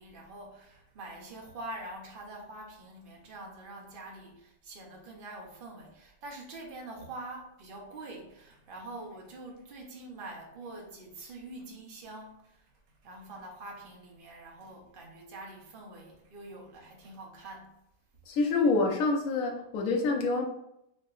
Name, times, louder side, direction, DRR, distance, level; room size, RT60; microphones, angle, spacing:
voice 1, 0.0-12.6 13.0-17.8, right 2 dB, 45° right, 0 dB, 0.7 m, -45 dB
voice 2, 18.3-20.5, left 3 dB, 60° left, 1 dB, 1.0 m, -27 dB
4.6 x 2.9 x 2.5 m, 0.82 s
omnidirectional pair, 2.0 m